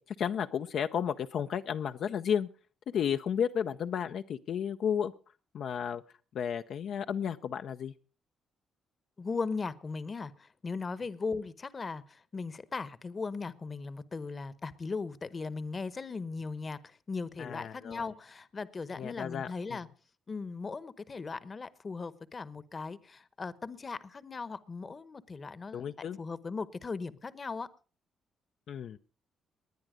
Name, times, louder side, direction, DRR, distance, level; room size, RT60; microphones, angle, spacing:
voice 1, 0.0-2.5 2.9-5.1 5.5-6.0 6.3-7.9 17.4-18.1 19.0-19.8 25.7-26.2 28.7-29.0, left 8 dB, 65° left, 7 dB, 0.6 m, -33 dB
voice 2, 9.2-19.9 20.3-27.7, left 4 dB, 35° left, 17 dB, 1.0 m, -38 dB
20.0 x 9.8 x 5.0 m, 0.38 s
cardioid pair, 90°, 0 cm